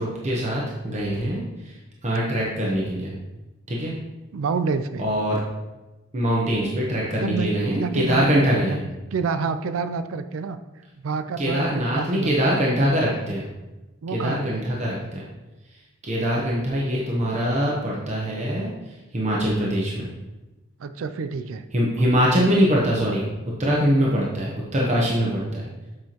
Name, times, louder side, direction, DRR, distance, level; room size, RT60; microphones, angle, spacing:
voice 1, 0.0-1.8 2.0-3.1 3.7-4.0 5.0-5.4 6.1-8.8 11.4-13.5 14.1-15.2 16.0-20.1 21.7-23.3 23.6-25.7, equal, 35° right, -4 dB, 0.9 m, -23 dB
voice 2, 4.3-5.0 7.2-7.5 7.7-8.8 9.1-10.6 11.0-12.4 14.0-14.6 20.8-21.6, right 5 dB, 80° right, 11 dB, 0.4 m, -28 dB
7.7 x 5.6 x 2.9 m, 1.1 s
head